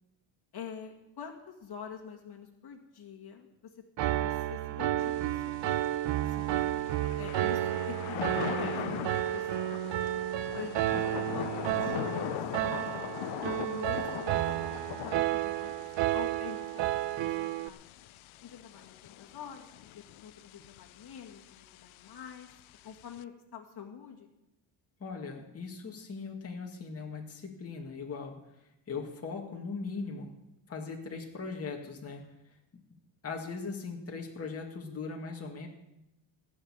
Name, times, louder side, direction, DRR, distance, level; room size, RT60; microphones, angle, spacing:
voice 1, 0.5-6.5 7.1-10.1 10.5-12.4 12.8-13.2 13.6-14.5 15.0-15.8 16.1-17.8 18.4-22.5 22.8-24.3, left 7 dB, 55° left, 0 dB, 2.1 m, -46 dB
Piano, 4.0-17.7, right 13 dB, 70° right, 0.7 m, -31 dB
Thunder / Rain, 5.0-23.2, left 15 dB, 90° left, 0.6 m, -41 dB
voice 2, 25.0-28.4 28.9-30.3 30.7-32.2 33.2-35.7, left 4 dB, 30° left, 0 dB, 2.1 m, -39 dB
17.5 x 6.6 x 8.9 m, 0.90 s
cardioid pair, 135°, 46 cm